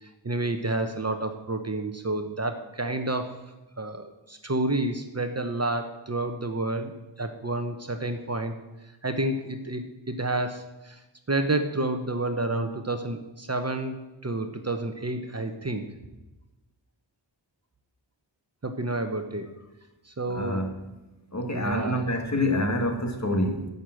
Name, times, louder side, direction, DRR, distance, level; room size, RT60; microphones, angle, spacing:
voice 1, 0.0-3.4 3.8-6.9 7.2-8.6 9.0-11.0 11.3-14.0 14.2-15.8 18.6-19.5 20.0-20.6 21.5-22.0, right 2 dB, 35° right, 7 dB, 1.0 m, -29 dB
voice 2, 20.3-20.7 21.3-23.7, left 1 dB, 35° left, 4 dB, 1.8 m, -26 dB
10.5 x 6.8 x 7.6 m, 1.0 s
wide cardioid pair, 80°, 46 cm